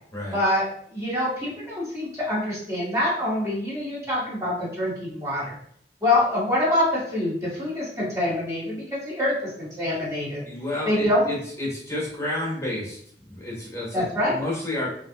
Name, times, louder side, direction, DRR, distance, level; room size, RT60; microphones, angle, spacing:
voice 1, 0.3-0.6 0.9-5.5 6.0-10.4 10.9-11.3 13.9-14.4, left 1 dB, 15° right, -6 dB, 0.9 m, -25 dB
voice 2, 10.4-13.0 13.3-14.9, left 1 dB, 15° left, -5 dB, 0.9 m, -30 dB
3.1 x 2.5 x 2.7 m, 0.64 s
head